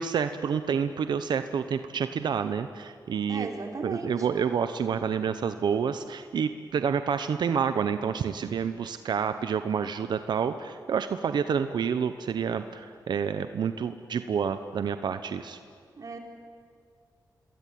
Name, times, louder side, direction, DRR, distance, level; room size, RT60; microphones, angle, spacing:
voice 1, 0.0-3.5 3.8-15.6, right 7 dB, 75° right, 10 dB, 1.0 m, -28 dB
voice 2, 3.3-4.3 16.0-16.2, right 3 dB, 50° right, 2 dB, 4.5 m, -36 dB
27.5 x 21.0 x 9.5 m, 2.1 s
cardioid pair, 80°, 8 cm